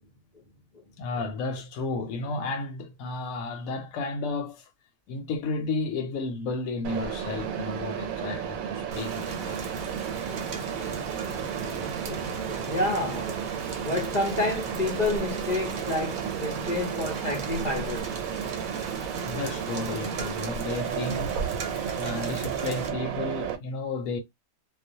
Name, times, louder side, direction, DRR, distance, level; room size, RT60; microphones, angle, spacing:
voice 1, 1.0-4.7 5.1-9.6 19.2-21.4 21.9-24.2, left 3 dB, 80° left, 1.0 m, -32 dB
Mechanisms, 6.8-23.6, right 8 dB, 85° right, 1.0 m, -33 dB
Rain, 8.9-22.9, right 4 dB, 60° right, 0.9 m, -39 dB
voice 2, 10.3-18.1, left 2 dB, 50° left, 0.5 m, -31 dB
2.4 x 2.0 x 2.7 m
omnidirectional pair, 1.4 m